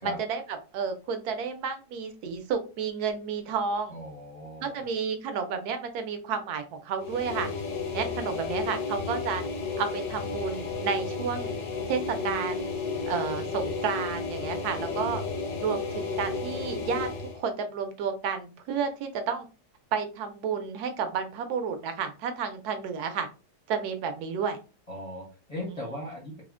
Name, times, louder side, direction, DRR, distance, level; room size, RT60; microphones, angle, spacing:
voice 1, 0.0-3.9 4.6-7.5 7.9-9.4 9.8-11.5 11.9-12.8 13.1-15.2 15.6-17.1 17.3-19.5 19.9-23.3 23.7-24.6 25.7-25.8, right 6 dB, 70° right, 7 dB, 1.0 m, -31 dB
voice 2, 3.9-4.9 24.9-26.4, left 1 dB, 40° left, -4 dB, 0.5 m, -38 dB
sound 1, 7.0-17.4, left 4 dB, 70° left, 1.1 m, -33 dB
3.4 x 2.0 x 2.4 m, 0.33 s
omnidirectional pair, 1.8 m